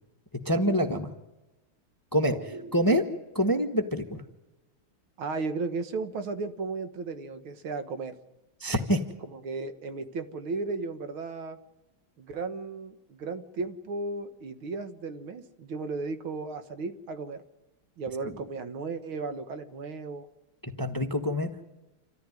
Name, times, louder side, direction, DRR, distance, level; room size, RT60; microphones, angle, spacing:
voice 1, 0.4-1.1 2.1-2.4 2.7-3.0 3.3-4.2 8.6-9.0 18.2-18.4 20.8-21.5, equal, 10° left, 7 dB, 1.3 m, -25 dB
voice 2, 2.3-2.7 5.2-8.2 9.3-11.6 12.2-17.4 18.0-20.3, right 3 dB, 70° right, 9 dB, 2.2 m, -35 dB
28.0 x 14.0 x 9.7 m, 1.0 s
omnidirectional pair, 2.4 m